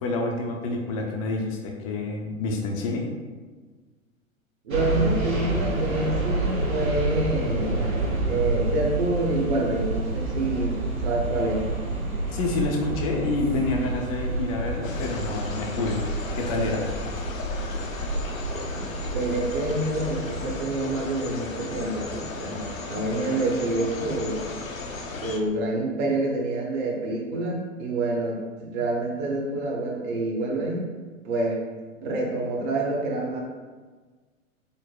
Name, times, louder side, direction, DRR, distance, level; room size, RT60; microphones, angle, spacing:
voice 1, 0.0-3.1 12.3-16.0 16.3-16.9, left 3 dB, 30° left, 1 dB, 0.4 m, -28 dB
voice 2, 4.6-7.8 8.3-11.7 18.7-18.9 19.1-24.4 25.2-30.9 31.2-31.6 32.0-33.4, right 2 dB, 35° right, -1 dB, 0.7 m, -27 dB
sound 1, 4.7-20.6, right 2 dB, 90° right, 0.8 m, -29 dB
sound 2, 14.8-25.4, left 3 dB, 80° left, 0.6 m, -35 dB
5.0 x 2.0 x 2.3 m, 1.4 s
figure-of-eight pair, 100°, 40 cm